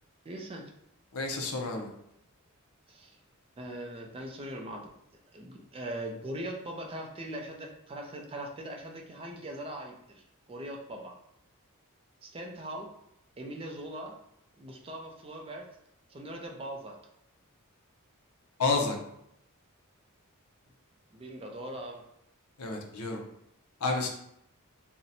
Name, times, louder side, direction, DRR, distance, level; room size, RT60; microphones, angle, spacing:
voice 1, 0.2-0.7 2.9-3.2 3.6-4.9 5.3-11.2 12.2-12.9 13.4-14.2 14.6-15.7 16.1-17.0 21.1-22.0, right 1 dB, 25° right, 2 dB, 0.4 m, -40 dB
voice 2, 1.1-1.9 18.6-19.0 22.6-23.2 23.8-24.1, left 3 dB, 75° left, 2 dB, 0.6 m, -29 dB
2.7 x 2.1 x 4.0 m, 0.76 s
head